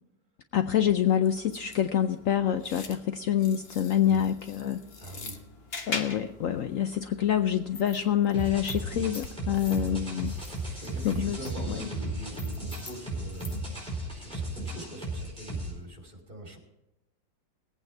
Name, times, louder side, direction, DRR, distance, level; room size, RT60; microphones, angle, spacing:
voice 1, 0.5-4.8 5.9-10.3 11.0-11.4 11.7-11.8, left 10 dB, 80° left, 9 dB, 0.7 m, -26 dB
sound 1, 1.2-13.9, left 3 dB, 35° left, 1.2 m, -44 dB
voice 2, 5.0-5.4 9.6-10.1 10.7-16.6, right 1 dB, 25° right, 1 dB, 2.7 m, -43 dB
sound 2, 8.3-15.7, right 1 dB, 5° left, 4.6 m, -35 dB
19.5 x 8.8 x 4.5 m, 0.96 s
omnidirectional pair, 2.0 m